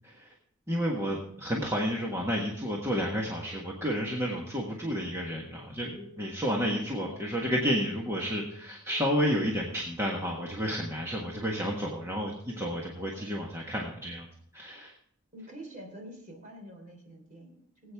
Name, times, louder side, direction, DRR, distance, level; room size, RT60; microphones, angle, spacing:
voice 1, 0.7-14.3 14.5-14.9, equal, 10° right, -2 dB, 1.5 m, -31 dB
Telephone, 3.5-3.8 4.1-4.4 4.7-5.0 5.3-5.6 5.9-6.2 6.5-6.8 7.1-7.4 7.7-8.0 8.3-8.6 8.9-9.2 9.5-9.8 10.1-10.4 10.7-11.0 11.3-11.6 11.9-12.2 12.5-12.8, right 3 dB, 25° left, 4.7 m, -54 dB
voice 2, 6.9-7.2 13.0-13.3 15.3-17.9, right 1 dB, 35° right, 1 dB, 3.3 m, -46 dB
19.0 x 8.6 x 3.6 m, 0.67 s
head